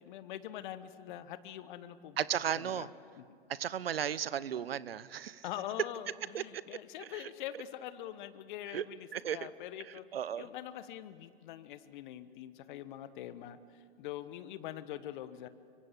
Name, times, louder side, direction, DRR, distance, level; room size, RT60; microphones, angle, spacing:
voice 1, 0.0-2.2 2.5-2.9 3.1-3.2 5.4-9.1 9.3-10.1 10.4-15.5, left 12 dB, 55° left, 13 dB, 1.3 m, -44 dB
voice 2, 2.2-2.9 3.5-5.4 6.3-6.6 7.0-7.3 8.7-8.8 9.1-9.4 10.1-10.5, right 9 dB, 75° right, 18 dB, 0.9 m, -35 dB
25.0 x 24.5 x 8.4 m, 2.4 s
figure-of-eight pair, 100°, 30 cm